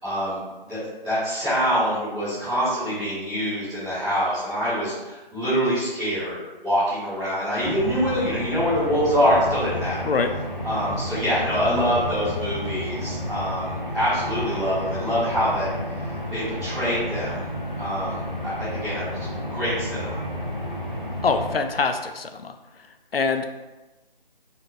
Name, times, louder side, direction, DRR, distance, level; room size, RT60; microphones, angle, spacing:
voice 1, 0.0-10.1 10.6-15.7 16.0-17.4 17.8-20.2, equal, 5° right, -17 dB, 1.0 m, -25 dB
sound 1, 7.6-21.5, left 1 dB, 10° left, 1.5 m, -31 dB
voice 2, 21.2-22.5 23.1-23.4, left 4 dB, 80° left, 7 dB, 0.5 m, -24 dB
4.3 x 3.8 x 2.6 m, 1.1 s
figure-of-eight pair, 160°, 29 cm